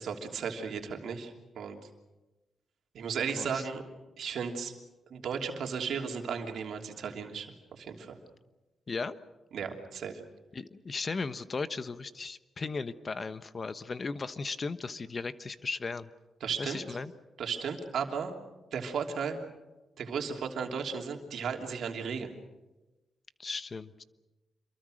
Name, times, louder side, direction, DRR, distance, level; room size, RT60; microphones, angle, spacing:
voice 1, 0.0-1.8 2.9-3.8 4.2-4.7 5.1-8.2 9.5-10.2 16.4-16.8 17.4-18.3 18.7-19.4 20.0-22.3, right 6 dB, 75° right, 3 dB, 3.0 m, -35 dB
voice 2, 3.4-3.7 8.9-9.2 10.5-16.1 16.6-17.1 23.4-24.0, left 4 dB, 40° left, 13 dB, 1.1 m, -36 dB
27.0 x 23.0 x 6.5 m, 1.1 s
cardioid pair, 70°, 0 cm